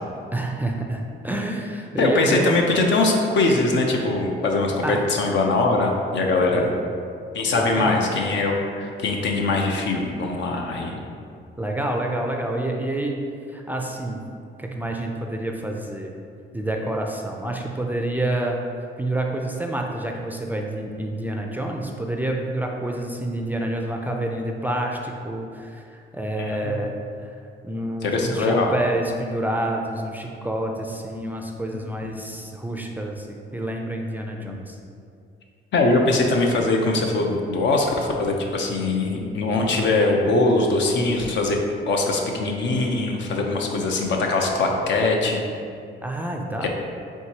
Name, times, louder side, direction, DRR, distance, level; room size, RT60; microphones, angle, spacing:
voice 1, 0.3-2.5 4.8-5.0 6.5-6.7 7.5-8.0 11.6-13.2 13.5-14.2 14.6-16.1 16.5-18.6 19.0-25.8 26.1-26.9 27.2-27.3 27.6-34.8 46.0-46.7, right 1 dB, 10° right, 1 dB, 0.4 m, -28 dB
voice 2, 2.0-6.7 7.3-11.0 26.4-26.8 28.0-28.7 34.4-34.6 35.7-41.6 41.9-45.4 46.6-46.7, left 2 dB, 65° left, 1 dB, 0.6 m, -22 dB
4.5 x 3.5 x 2.8 m, 2.4 s
cardioid pair, 90°, 20 cm